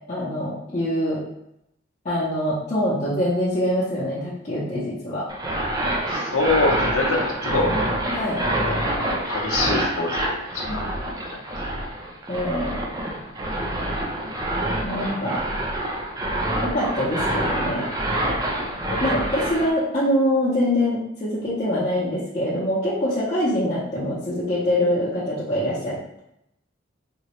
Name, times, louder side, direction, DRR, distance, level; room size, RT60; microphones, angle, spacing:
voice 1, 0.1-1.2 2.0-5.3 8.1-8.4 10.7-11.1 12.3-12.8 14.8-15.4 16.6-17.9 19.0-26.2, left 1 dB, 35° left, -9 dB, 0.6 m, -24 dB
sound 1, 5.3-19.7, right 1 dB, 20° right, 0.4 m, -26 dB
voice 2, 6.1-7.7 8.6-8.8 9.1-10.8 18.9-19.0, left 3 dB, 90° left, 0 dB, 0.7 m, -25 dB
3.6 x 2.0 x 2.9 m, 0.81 s
head